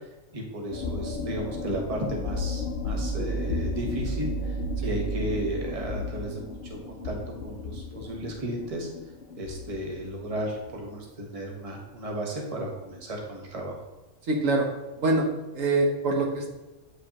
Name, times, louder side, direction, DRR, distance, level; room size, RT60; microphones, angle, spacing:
voice 1, 0.3-6.8 7.0-7.2 7.4-8.9 9.4-13.8, right 1 dB, 30° right, 0 dB, 1.0 m, -34 dB
sound 1, 0.7-10.7, left 1 dB, 55° left, 0.6 m, -33 dB
voice 2, 14.2-14.7 15.0-15.3 15.5-16.5, right 2 dB, 75° right, 1 dB, 1.3 m, -24 dB
8.3 x 4.9 x 2.9 m, 1.1 s
omnidirectional pair, 1.4 m